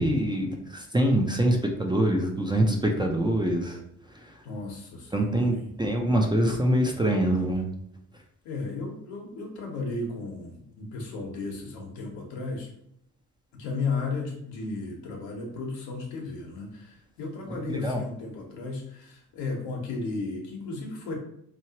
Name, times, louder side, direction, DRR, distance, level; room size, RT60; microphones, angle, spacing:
voice 1, 0.0-3.8 4.1-4.3 5.1-7.6 17.5-18.0, right 1 dB, 10° right, 1 dB, 0.5 m, -25 dB
voice 2, 4.4-5.7 8.4-12.7 13.5-21.1, left 3 dB, 75° left, 0 dB, 1.1 m, -34 dB
3.0 x 2.7 x 2.8 m, 0.73 s
hypercardioid pair, 65°, 44 cm